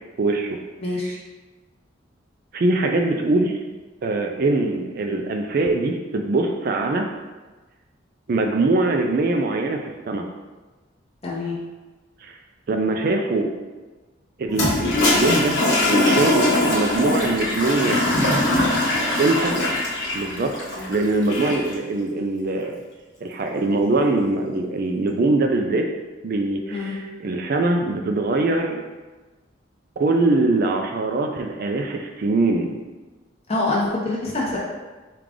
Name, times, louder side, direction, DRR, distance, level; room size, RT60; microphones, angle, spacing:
voice 1, 0.2-0.5 1.0-1.1 2.5-3.6 4.0-7.1 8.3-10.2 12.2-12.4 12.7-13.5 14.4-15.6 15.9-18.4 19.2-19.5 20.1-22.8 23.2-25.9 26.2-28.8 30.0-32.8, right 2 dB, 45° right, 3 dB, 0.3 m, -22 dB
voice 2, 0.8-1.2 11.2-11.6 20.7-20.9 26.7-27.0 33.5-34.6, left 2 dB, 30° left, -4 dB, 0.9 m, -25 dB
Toilet flush, 14.5-21.7, left 1 dB, 60° left, 1.1 m, -21 dB
4.8 x 2.4 x 3.6 m, 1.2 s
head